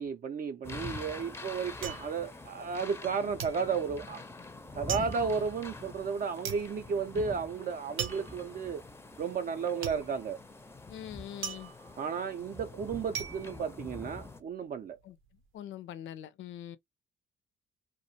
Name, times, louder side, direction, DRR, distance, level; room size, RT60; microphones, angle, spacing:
voice 1, 0.0-4.2 4.7-8.8 9.2-10.4 12.0-15.0, right 6 dB, 45° right, 0.4 m, -33 dB
sound 1, 0.6-14.4, left 3 dB, 10° left, 0.4 m, -45 dB
sound 2, 1.8-3.1 3.4-14.5 14.8-15.4, right 8 dB, 90° right, 0.6 m, -42 dB
voice 2, 10.9-11.7 15.0-15.2 15.5-16.8, left 11 dB, 75° left, 0.5 m, -43 dB
2.4 x 2.1 x 2.6 m
cardioid pair, 90°, 20 cm